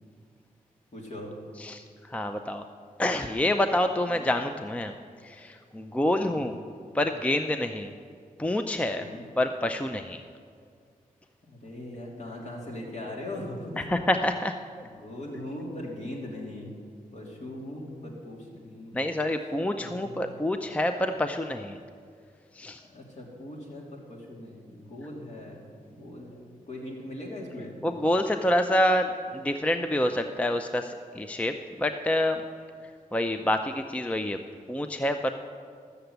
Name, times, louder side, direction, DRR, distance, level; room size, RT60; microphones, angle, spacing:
voice 1, 0.9-1.3 4.1-4.2 6.2-6.4 9.0-9.2 11.4-13.8 14.8-16.7 17.1-19.0 19.8-20.3 22.9-27.7, left 1 dB, 55° left, -3 dB, 2.9 m, -40 dB
voice 2, 1.6-2.7 3.0-4.9 5.2-6.6 6.9-7.9 8.4-9.1 9.4-10.2 13.8-14.6 18.9-21.8 22.5-22.8 27.8-32.5 33.1-34.4 34.7-35.3, left 1 dB, 10° left, 7 dB, 0.4 m, -27 dB
13.0 x 6.8 x 8.0 m, 2.2 s
wide cardioid pair, 100°, 15 cm